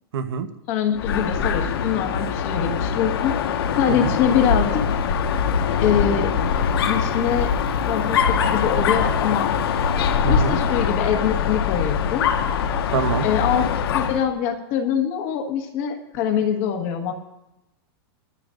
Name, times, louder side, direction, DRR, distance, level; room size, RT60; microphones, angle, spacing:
voice 1, 0.1-0.5 3.9-4.1 10.2-10.6 12.9-13.3, right 6 dB, 80° right, 8 dB, 1.2 m, -25 dB
voice 2, 0.7-3.3 3.8-4.8 5.8-6.3 6.8-7.5 7.9-9.5 10.0-12.3 13.2-17.1, left 8 dB, 35° left, 5 dB, 1.5 m, -24 dB
Dog, 1.0-14.3, left 7 dB, 75° left, 1.4 m, -22 dB
23.5 x 14.0 x 2.6 m, 0.95 s
supercardioid pair, 170°, 13 cm